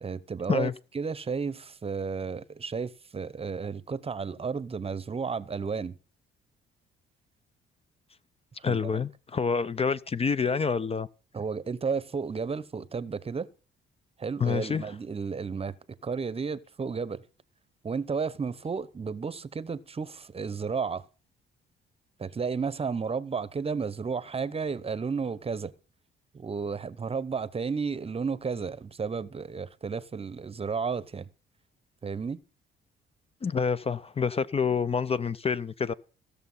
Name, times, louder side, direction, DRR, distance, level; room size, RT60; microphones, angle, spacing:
voice 1, 0.0-6.0 8.6-8.9 11.3-13.5 14.2-15.7 16.0-17.2 17.8-21.0 22.2-25.7 26.3-31.3 32.0-32.4, right 5 dB, 30° right, 0.8 m, -32 dB
voice 2, 8.6-11.1 14.4-14.9 33.4-35.9, left 5 dB, 30° left, 0.5 m, -27 dB
15.5 x 6.8 x 5.5 m
cardioid pair, 90°, 20 cm